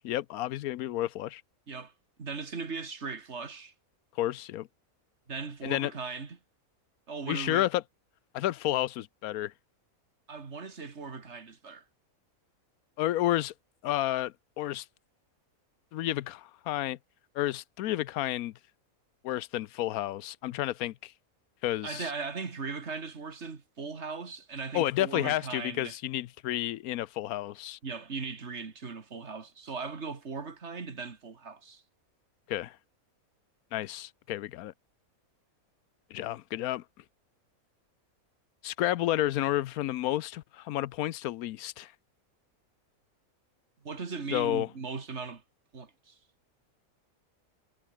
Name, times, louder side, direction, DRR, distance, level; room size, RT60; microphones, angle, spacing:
voice 1, 0.0-1.4 4.2-4.7 5.6-5.9 7.3-7.8 8.3-9.5 13.0-13.5 13.8-14.9 15.9-17.0 17.3-18.5 19.2-21.1 21.6-22.1 24.7-27.8 32.5-32.8 33.7-34.7 36.1-36.8 38.6-41.9 44.3-44.7, left 14 dB, 90° left, 1.1 m, -31 dB
voice 2, 2.2-3.7 5.3-6.4 7.1-7.7 10.3-11.8 21.8-26.0 27.8-31.8 43.8-45.4 45.7-46.2, right 4 dB, 50° right, 2.3 m, -38 dB
omnidirectional pair, 1.5 m